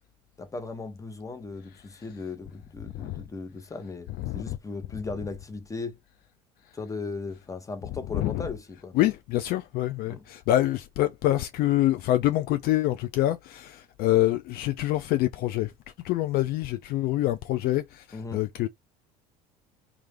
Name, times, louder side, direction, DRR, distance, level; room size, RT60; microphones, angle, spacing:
voice 1, 0.4-6.0 6.7-8.9 10.1-10.2 18.1-18.4, left 3 dB, 15° left, 0.9 m, -37 dB
voice 2, 2.9-3.2 4.2-4.6 8.1-8.5 8.9-15.7 16.0-18.7, left 14 dB, 50° left, 0.4 m, -26 dB
3.2 x 2.4 x 3.3 m
hypercardioid pair, 70°, 19 cm